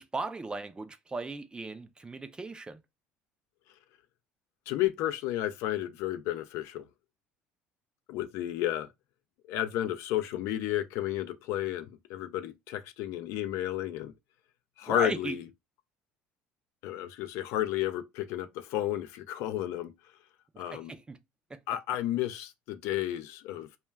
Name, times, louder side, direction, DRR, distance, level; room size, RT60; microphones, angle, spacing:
voice 1, 0.0-2.8 14.9-15.4 20.5-21.2 21.5-21.6, right 3 dB, 20° right, 0.4 m, -37 dB
voice 2, 4.7-6.9 8.1-8.9 9.5-14.1 14.8-15.5 16.8-19.9 20.6-20.9 21.7-23.7, left 13 dB, 70° left, 0.3 m, -32 dB
2.2 x 2.1 x 3.3 m
supercardioid pair, 95°, 5 cm